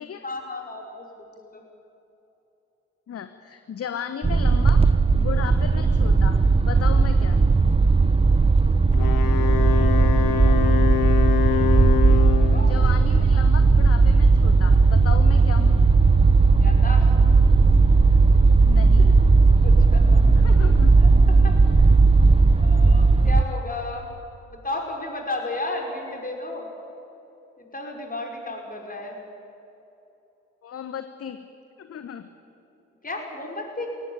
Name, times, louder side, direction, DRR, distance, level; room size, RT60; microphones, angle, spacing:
voice 1, 0.2-1.6 12.1-12.8 16.6-17.1 19.6-20.2 21.0-21.9 22.6-24.1 24.5-26.7 27.6-29.2 33.0-33.9, left 2 dB, 25° left, 1 dB, 5.7 m, -34 dB
voice 2, 3.1-4.8 5.2-6.4 6.7-7.4 12.7-15.8 18.7-19.1 20.4-20.9 30.6-31.4 31.8-32.3, left 8 dB, 40° left, 10 dB, 1.2 m, -35 dB
sound 1, 4.2-23.4, right 3 dB, 15° right, 0.9 m, -17 dB
Wind instrument woodwind instrument, 8.9-12.7, left 10 dB, 60° left, 2.1 m, -25 dB
22.5 x 18.5 x 8.9 m, 3.0 s
figure-of-eight pair, 45°, 36 cm